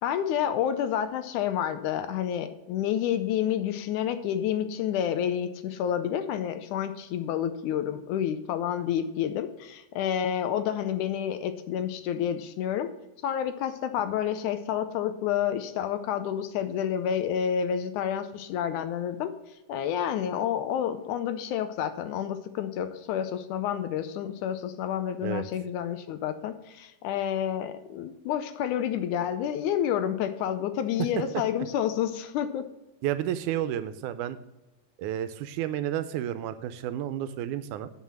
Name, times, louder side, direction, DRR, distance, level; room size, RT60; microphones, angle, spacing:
voice 1, 0.0-12.9 13.2-19.3 19.7-32.7, left 9 dB, 80° left, 10 dB, 2.0 m, -29 dB
voice 2, 33.0-34.4 35.0-37.9, right 11 dB, 80° right, 12 dB, 2.0 m, -31 dB
9.5 x 5.7 x 7.4 m, 1.0 s
omnidirectional pair, 3.6 m